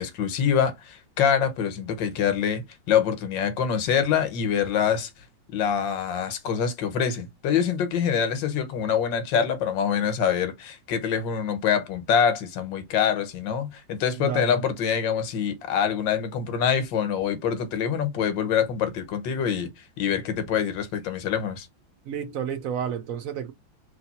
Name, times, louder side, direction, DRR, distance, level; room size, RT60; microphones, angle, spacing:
voice 1, 0.0-5.1 5.5-21.7, left 7 dB, 90° left, 1.6 m, -25 dB
voice 2, 14.2-14.6 22.1-23.5, right 8 dB, 65° right, 0.8 m, -31 dB
3.3 x 3.0 x 4.1 m
omnidirectional pair, 2.0 m